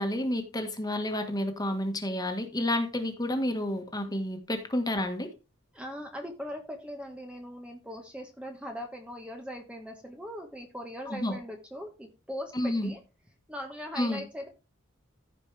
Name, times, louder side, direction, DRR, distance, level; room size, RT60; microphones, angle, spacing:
voice 1, 0.0-5.3 11.1-11.4 12.5-12.9 13.9-14.2, left 1 dB, 20° left, 1.7 m, -30 dB
voice 2, 5.7-13.0 13.5-14.5, equal, 5° right, 1.3 m, -40 dB
15.0 x 5.2 x 3.4 m
head